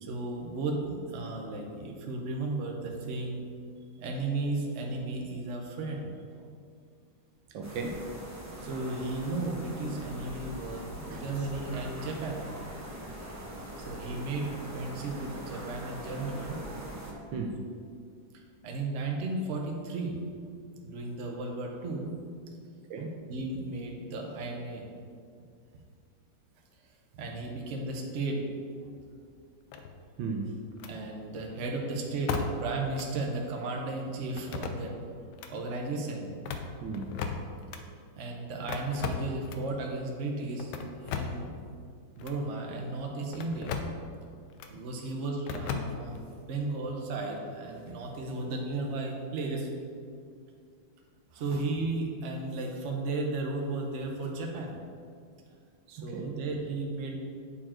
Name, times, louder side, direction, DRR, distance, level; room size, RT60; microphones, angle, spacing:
voice 1, 0.0-3.5 4.0-6.1 8.6-12.5 13.8-16.6 18.6-20.2 20.8-22.2 23.3-24.9 27.2-28.4 30.9-35.0 35.5-36.3 38.2-40.7 41.0-41.6 42.2-43.8 44.7-49.7 51.3-54.8 55.9-57.2, right 2 dB, 50° right, 1 dB, 0.9 m, -34 dB
voice 2, 7.5-8.1 11.1-11.2 17.3-17.7 22.9-23.2 30.2-30.6 36.8-37.1 56.0-56.4, right 4 dB, 75° right, 4 dB, 1.3 m, -35 dB
sound 1, 7.6-17.1, equal, 20° right, 0.4 m, -42 dB
sound 2, 29.7-30.2 30.8-31.0 32.3-32.7 33.0-33.1 34.4-35.0 35.3-35.5 36.3-37.8 38.7-39.7 40.6-41.5 42.2-42.4 43.3-44.0 44.6-44.7 45.5-46.3, left 6 dB, 70° left, 1.0 m, -36 dB
8.9 x 4.4 x 4.3 m, 2.2 s
omnidirectional pair, 2.2 m